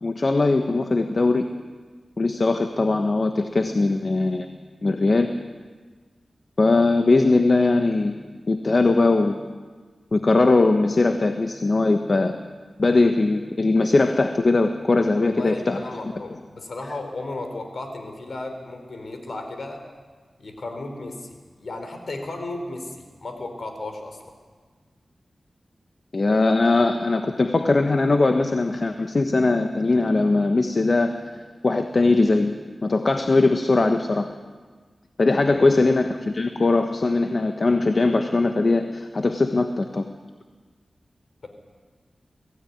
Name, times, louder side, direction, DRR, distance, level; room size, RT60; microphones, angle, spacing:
voice 1, 0.0-1.5 2.2-4.5 4.8-5.3 6.6-8.1 8.5-9.4 10.1-12.4 12.8-15.8 26.1-31.2 31.6-32.5 32.8-34.3 35.2-40.1, left 3 dB, 50° left, 6 dB, 1.3 m, -20 dB
voice 2, 15.2-19.8 20.4-24.2 35.5-35.9, left 2 dB, 70° left, 5 dB, 4.2 m, -34 dB
22.5 x 16.5 x 9.6 m, 1.5 s
cardioid pair, 60°, 0 cm